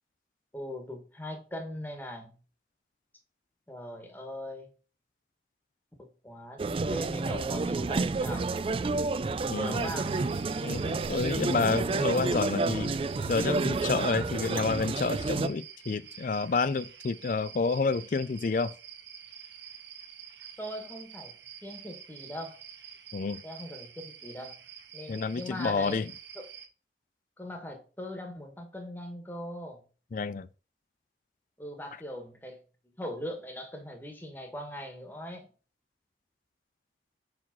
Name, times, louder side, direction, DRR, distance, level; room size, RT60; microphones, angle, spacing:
voice 1, 0.5-2.3 3.7-4.7 6.0-8.5 9.4-10.2 20.6-21.3 21.6-22.6 23.4-24.6 24.9-26.0 26.3-26.5 27.4-29.8 31.6-32.6 33.0-35.5, equal, 10° left, 1.5 m, -40 dB
sound 1, 6.6-15.5, right 3 dB, 30° right, 0.3 m, -30 dB
voice 2, 9.5-10.0 10.6-12.9 13.3-18.7 23.1-23.4 25.1-26.1 30.1-30.5, left 4 dB, 45° left, 0.4 m, -29 dB
sound 2, 9.6-26.7, right 8 dB, 90° right, 1.2 m, -48 dB
5.7 x 4.8 x 5.9 m
head